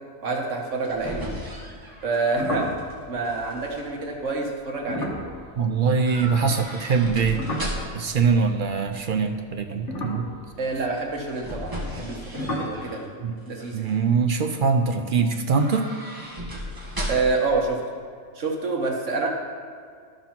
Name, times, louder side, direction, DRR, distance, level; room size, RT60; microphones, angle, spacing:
voice 1, 0.2-1.3 2.0-2.7 3.1-5.1 10.6-13.1 13.5-13.9 17.1-17.8 18.3-19.3, right 3 dB, 75° right, 1 dB, 1.5 m, -27 dB
sound 1, 0.7-2.9 3.2-3.8 6.0-8.1 10.9-13.0 13.5-13.9 15.4-17.5 17.8-17.9, equal, 15° right, 1.4 m, -36 dB
sound 2, 2.3-6.7 7.0-9.1 9.7-12.1 12.3-12.9, left 1 dB, 70° left, 1.6 m, -34 dB
voice 2, 5.6-7.4 7.9-10.3 13.2-13.3 13.7-15.9, right 5 dB, 55° right, 6 dB, 0.6 m, -23 dB
11.5 x 5.6 x 5.9 m, 2.1 s
omnidirectional pair, 1.3 m